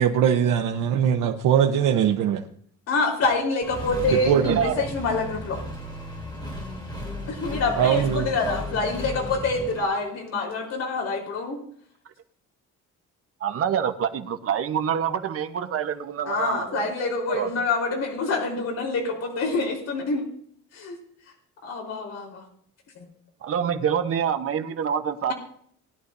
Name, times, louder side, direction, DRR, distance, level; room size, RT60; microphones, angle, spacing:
voice 1, 0.0-2.4 4.1-4.6 7.8-8.3, right 9 dB, 85° right, 3 dB, 1.0 m, -21 dB
voice 2, 2.9-5.6 7.3-11.6 16.3-20.2 20.7-21.0 21.6-22.4, left 3 dB, 55° left, 0 dB, 3.9 m, -26 dB
Accelerating revving vroom, 3.6-9.8, left 1 dB, 15° left, 3.1 m, -34 dB
voice 3, 13.4-16.6 17.4-17.5 23.5-25.3, right 8 dB, 45° right, 8 dB, 1.0 m, -26 dB
20.0 x 11.0 x 2.7 m, 0.63 s
cardioid pair, 150°, 31 cm